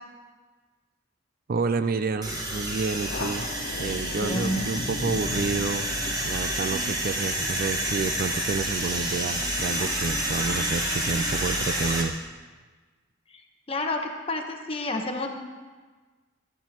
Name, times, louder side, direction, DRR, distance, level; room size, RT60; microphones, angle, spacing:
voice 1, 1.5-3.5 3.8-5.9 6.2-12.2, right 4 dB, 45° right, 11 dB, 0.4 m, -29 dB
sound 1, 2.2-12.0, right 1 dB, 20° right, 1.5 m, -29 dB
Thunder, 3.0-10.1, left 3 dB, 55° left, 0.6 m, -39 dB
voice 2, 4.2-4.7 13.7-15.3, left 2 dB, 25° left, 3 dB, 1.0 m, -29 dB
15.5 x 10.5 x 3.0 m, 1.4 s
head